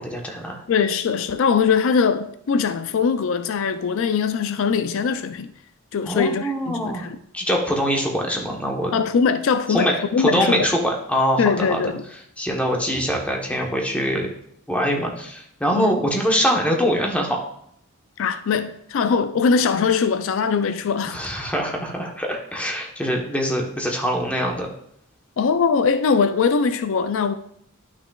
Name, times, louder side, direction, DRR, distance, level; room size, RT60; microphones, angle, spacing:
voice 1, 0.0-0.6 6.1-7.1 7.3-8.9 9.7-11.8 12.4-14.3 14.7-17.4 21.1-24.7, equal, 5° left, 1.1 m, -23 dB
voice 2, 0.7-5.5 5.9-7.2 8.9-10.7 11.4-12.0 15.7-16.0 18.2-21.2 25.4-27.3, left 5 dB, 65° left, 0.4 m, -21 dB
11.5 x 6.0 x 2.4 m
head